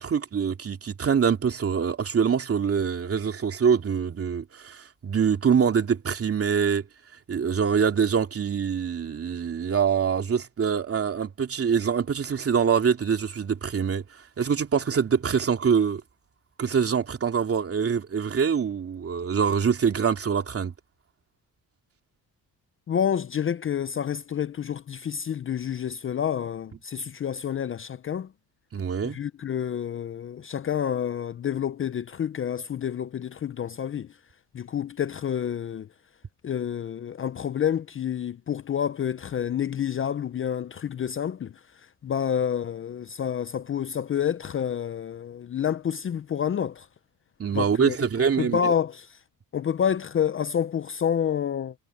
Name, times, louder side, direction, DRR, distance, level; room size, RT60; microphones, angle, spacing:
voice 1, 0.0-6.8 7.3-14.0 14.4-16.0 16.6-20.7 28.7-29.2 47.4-48.7, right 7 dB, 40° right, 2.9 m, -24 dB
voice 2, 22.9-28.3 29.0-34.1 34.5-35.9 36.4-41.5 42.0-46.9 47.5-48.0 48.4-49.2 49.5-51.7, left 8 dB, 35° left, 0.6 m, -28 dB
cardioid pair, 120°, 37 cm